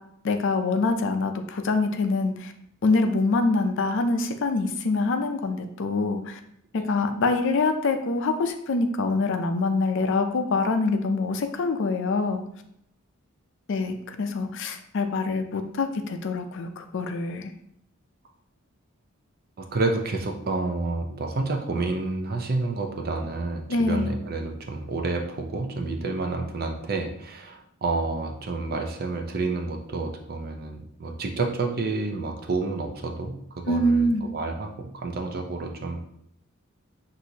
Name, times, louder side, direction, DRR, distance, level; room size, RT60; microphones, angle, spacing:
voice 1, 0.2-2.5 2.8-6.4 6.7-12.4 13.7-17.5 23.7-24.1 33.7-34.3, left 3 dB, 65° left, 7 dB, 0.5 m, -25 dB
voice 2, 19.6-36.0, right 3 dB, 45° right, 4 dB, 0.6 m, -29 dB
6.1 x 2.7 x 2.7 m, 0.71 s
head